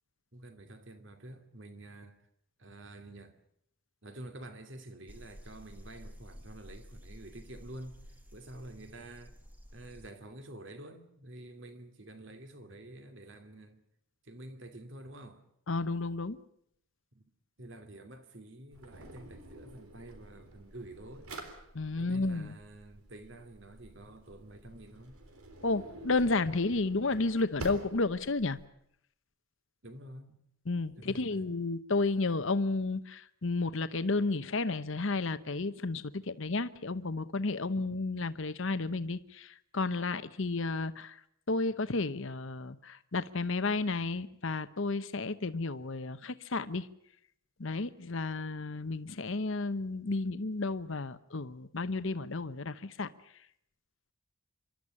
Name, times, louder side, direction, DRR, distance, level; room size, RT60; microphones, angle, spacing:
voice 1, 0.3-2.2 2.6-3.3 4.0-9.4 9.7-13.8 14.2-15.4 17.1-17.2 17.6-21.3 22.0-25.2 29.8-30.4 31.0-31.5 37.7-37.9, right 1 dB, 55° right, 2.4 m, -49 dB
sound 1, 5.1-10.1, equal, 5° right, 1.9 m, -52 dB
voice 2, 15.7-16.4 21.7-22.6 25.6-28.6 30.7-41.2 41.5-46.9 47.6-53.1, left 3 dB, 60° left, 0.9 m, -32 dB
Drawer open or close, 18.7-28.7, right 2 dB, 90° right, 3.7 m, -49 dB
27.0 x 13.0 x 9.8 m
head